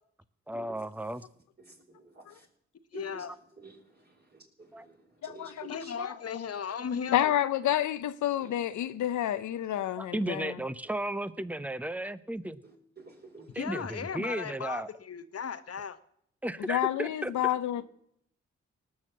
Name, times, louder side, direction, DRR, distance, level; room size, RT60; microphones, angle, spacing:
voice 1, 0.5-1.3 3.2-3.4 4.7-4.9 7.2-7.3 10.0-12.6 13.5-14.9 16.4-17.3, right 1 dB, 5° right, 0.8 m, -34 dB
voice 2, 1.7-2.5 2.9-3.2 3.6-5.9 8.4-8.5 10.3-10.4 12.6-13.5, right 3 dB, 35° right, 4.9 m, -51 dB
voice 3, 2.9-3.3 5.7-7.3 13.5-16.0, left 7 dB, 55° left, 1.2 m, -36 dB
voice 4, 5.2-6.1 7.1-10.6 16.7-17.8, left 12 dB, 85° left, 0.8 m, -29 dB
19.0 x 6.5 x 7.4 m
supercardioid pair, 55°, 29 cm